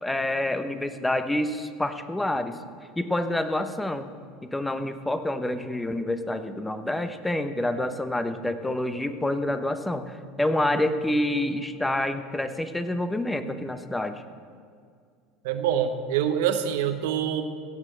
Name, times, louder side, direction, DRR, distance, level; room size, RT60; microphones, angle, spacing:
voice 1, 0.0-2.6 3.0-4.1 4.4-14.3, left 1 dB, 10° left, 9 dB, 1.0 m, -27 dB
voice 2, 15.4-17.4, right 9 dB, 70° right, 9 dB, 1.0 m, -25 dB
16.0 x 6.3 x 7.6 m, 2.1 s
hypercardioid pair, 75°, 0 cm